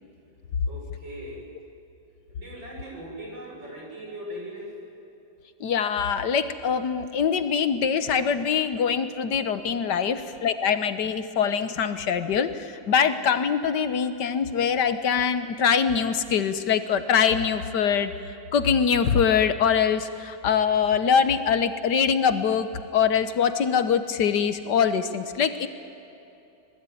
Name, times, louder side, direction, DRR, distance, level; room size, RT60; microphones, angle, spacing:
voice 1, 0.7-1.5 2.4-4.7 9.9-10.0, equal, 75° right, -2 dB, 7.1 m, -39 dB
voice 2, 5.6-18.1 18.5-25.7, left 7 dB, 65° left, 11 dB, 1.6 m, -23 dB
26.0 x 20.0 x 9.3 m, 2.9 s
omnidirectional pair, 2.0 m